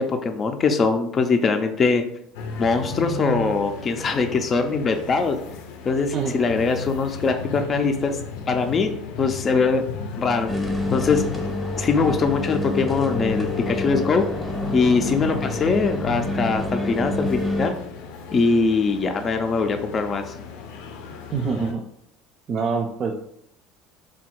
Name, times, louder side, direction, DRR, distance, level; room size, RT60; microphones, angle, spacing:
voice 1, 0.0-2.0 2.6-5.4 5.8-8.2 8.5-8.9 9.2-9.8 10.2-10.5 10.9-11.2 11.8-14.2 14.7-17.7 18.3-20.2, left 4 dB, 30° left, 5 dB, 0.4 m, -22 dB
sound 1, 2.3-21.7, left 4 dB, 80° left, 0.5 m, -35 dB
sound 2, 10.5-17.7, left 2 dB, 5° left, 0.8 m, -28 dB
voice 2, 21.3-21.8 22.5-23.2, right 5 dB, 40° right, 1 dB, 0.4 m, -25 dB
3.6 x 2.3 x 4.3 m, 0.69 s
supercardioid pair, 120°, 0 cm